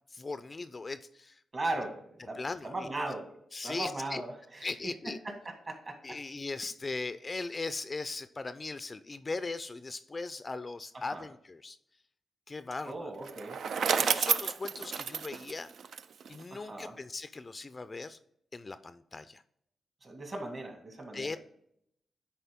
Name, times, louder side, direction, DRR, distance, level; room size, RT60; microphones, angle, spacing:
voice 1, 0.1-1.4 2.4-2.9 3.5-4.2 4.6-5.2 6.0-11.8 12.5-13.1 14.0-15.7 16.3-18.2 18.5-19.4 21.1-21.4, left 3 dB, 30° left, 12 dB, 0.4 m, -39 dB
voice 2, 1.5-3.3 3.6-4.9 5.2-6.2 11.1-11.3 12.9-13.6 16.5-16.9 20.0-21.4, right 2 dB, 35° right, 3 dB, 2.0 m, -38 dB
Bicycle, 13.2-16.4, right 6 dB, 65° right, 0.4 m, -30 dB
10.0 x 4.3 x 3.6 m, 0.72 s
cardioid pair, 105°, 0 cm